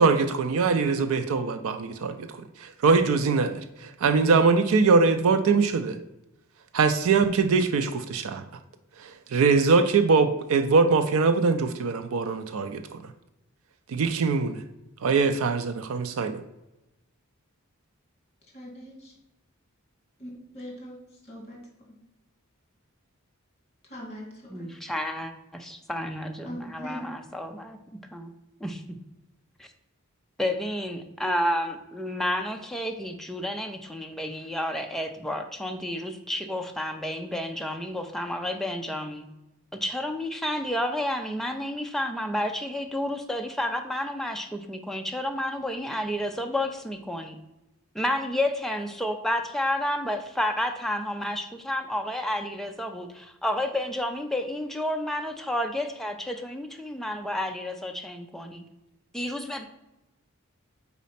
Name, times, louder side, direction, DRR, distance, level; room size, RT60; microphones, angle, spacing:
voice 1, 0.0-6.0 6.7-8.4 9.0-13.1 13.9-14.6 15.0-16.4, right 4 dB, 75° right, 7 dB, 0.4 m, -22 dB
voice 2, 18.5-19.1 20.2-21.0 21.3-21.6 23.9-24.7 26.4-27.1, equal, 30° left, -1 dB, 2.0 m, -40 dB
voice 3, 24.5-27.8 28.1-28.3 28.6-29.0 29.6-29.7 30.4-39.3 39.8-47.4 47.9-58.6 59.1-59.7, left 1 dB, ahead, 4 dB, 0.5 m, -30 dB
4.2 x 4.1 x 5.6 m, 0.95 s
head